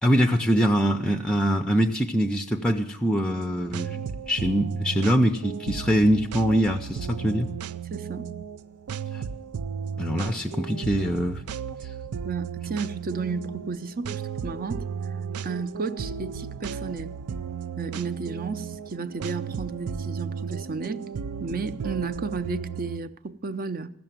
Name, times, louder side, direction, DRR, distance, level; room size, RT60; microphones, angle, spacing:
voice 1, 0.0-4.0 4.3-7.5 9.1-9.2 10.0-11.4, equal, 5° left, 0.5 m, -23 dB
sound 1, 3.3-23.0, right 7 dB, 85° right, 0.5 m, -35 dB
voice 2, 7.9-8.3 12.2-14.8 15.4-17.1 17.8-21.0 21.4-23.9, right 4 dB, 40° right, 0.6 m, -33 dB
15.0 x 6.9 x 9.1 m
head